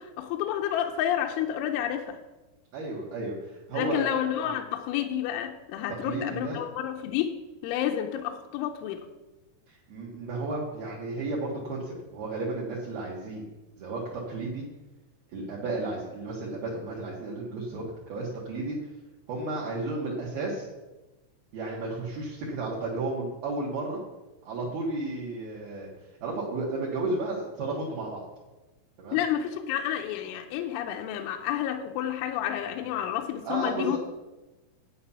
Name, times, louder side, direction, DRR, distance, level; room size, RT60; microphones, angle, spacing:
voice 1, 0.0-2.2 3.7-7.3 7.6-9.0 29.1-34.0, left 10 dB, 85° left, 4 dB, 3.0 m, -30 dB
voice 2, 2.7-4.1 4.4-4.6 6.0-6.6 9.7-13.5 13.8-14.6 15.3-18.9 19.3-20.7 21.5-24.0 24.4-25.9 26.2-28.2 29.0-29.2 33.4-34.0, right 2 dB, 60° right, -5 dB, 2.9 m, -33 dB
10.0 x 8.2 x 5.7 m, 1.1 s
omnidirectional pair, 5.9 m